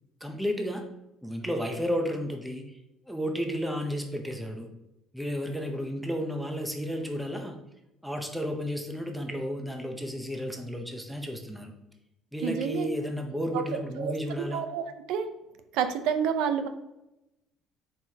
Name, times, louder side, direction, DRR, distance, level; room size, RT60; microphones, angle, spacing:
voice 1, 0.2-0.8 1.2-2.6 3.1-4.7 5.1-7.6 8.0-11.7 12.3-14.6, equal, ahead, 3 dB, 0.7 m, -32 dB
voice 2, 12.4-12.9 13.5-13.6 14.0-14.1 14.5-15.3 15.7-16.7, right 7 dB, 75° right, 8 dB, 0.6 m, -28 dB
7.4 x 4.8 x 2.8 m, 0.91 s
cardioid pair, 170°, 0 cm